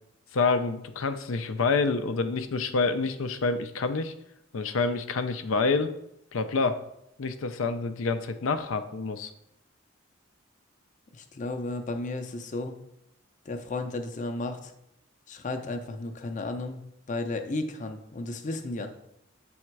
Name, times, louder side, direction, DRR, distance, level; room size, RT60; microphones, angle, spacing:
voice 1, 0.3-4.1 4.5-5.9 6.3-6.8 7.2-9.3, left 4 dB, 85° left, 9 dB, 0.5 m, -27 dB
voice 2, 11.1-12.8 13.5-14.7 15.3-16.8 17.1-18.9, left 2 dB, 40° left, 5 dB, 0.6 m, -33 dB
7.4 x 3.6 x 4.6 m, 0.80 s
head